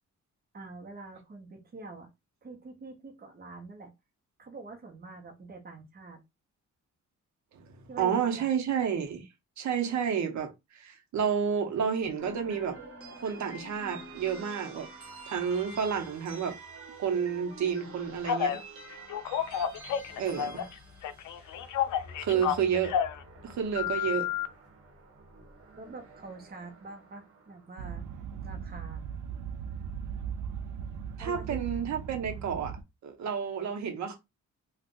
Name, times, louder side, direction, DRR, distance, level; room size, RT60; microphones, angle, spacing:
voice 1, 0.5-2.1 2.4-3.9 4.4-6.2 7.9-8.5 22.3-22.4 25.8-28.0 28.4-29.1 31.2-31.7, right 3 dB, 30° right, 0.9 m, -45 dB
voice 2, 8.0-9.2 9.6-12.8 13.2-14.9 15.3-16.5 17.0-18.6 20.2-20.7 22.2-22.9 23.4-24.3 31.2-34.2, right 7 dB, 70° right, 0.9 m, -30 dB
sound 1, 12.2-28.4, right 2 dB, 50° right, 1.2 m, -48 dB
Telephone, 18.2-18.6 19.1-20.7 21.0-23.2 23.7-24.5, left 9 dB, 90° left, 0.5 m, -30 dB
sound 2, 27.8-32.8, right 7 dB, 85° right, 0.5 m, -38 dB
2.5 x 2.3 x 3.7 m
wide cardioid pair, 155°, 30 cm